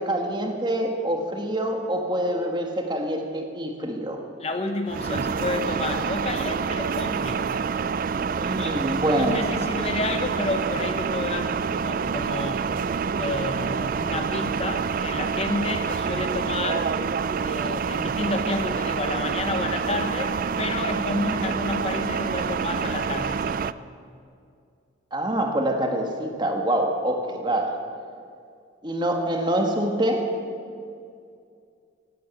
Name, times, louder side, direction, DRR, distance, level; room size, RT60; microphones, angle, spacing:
voice 1, 0.0-4.2 8.4-9.5 25.1-27.8 28.8-30.3, right 1 dB, 25° right, 3 dB, 1.6 m, -25 dB
voice 2, 4.4-7.5 8.6-8.7 9.2-12.7 13.2-16.9 17.4-23.8, left 2 dB, 30° left, 6 dB, 0.9 m, -30 dB
sound 1, 4.9-23.7, right 5 dB, 45° right, 0.3 m, -27 dB
16.5 x 9.2 x 9.0 m, 2.4 s
head